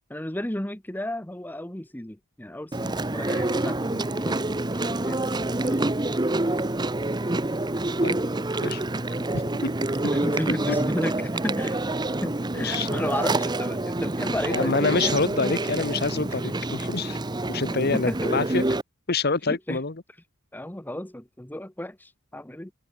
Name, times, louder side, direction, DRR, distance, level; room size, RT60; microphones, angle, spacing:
voice 1, 0.1-5.9 9.1-9.3 9.6-9.7 10.1-15.0 17.9-18.3 19.4-19.8 20.5-22.7, left 1 dB, 10° left, 1.0 m, -34 dB
Chewing mastication, 2.7-18.8, right 2 dB, 20° right, 0.8 m, -27 dB
voice 2, 12.6-13.0 14.5-17.2 17.5-18.6 19.1-19.9, left 3 dB, 45° left, 1.1 m, -26 dB
head